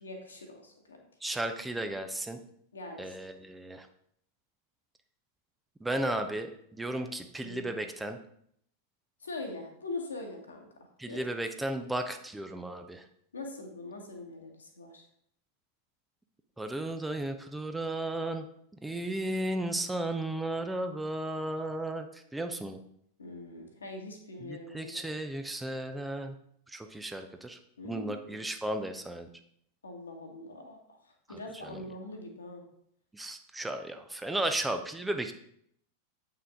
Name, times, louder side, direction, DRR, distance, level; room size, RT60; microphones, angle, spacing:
voice 1, 0.0-1.1 2.7-3.2 7.4-7.8 9.2-10.7 11.1-11.2 13.3-15.0 23.2-25.0 27.8-28.4 29.8-32.7, left 2 dB, 75° left, 2 dB, 1.5 m, -42 dB
voice 2, 1.2-2.4 3.0-3.9 5.8-8.2 11.0-13.0 16.6-18.5 18.8-22.8 24.4-26.4 26.7-27.6 27.8-29.3 31.6-31.8 33.1-35.3, right 1 dB, 5° right, 6 dB, 0.6 m, -34 dB
8.1 x 5.7 x 3.7 m, 0.70 s
figure-of-eight pair, 90°, 0 cm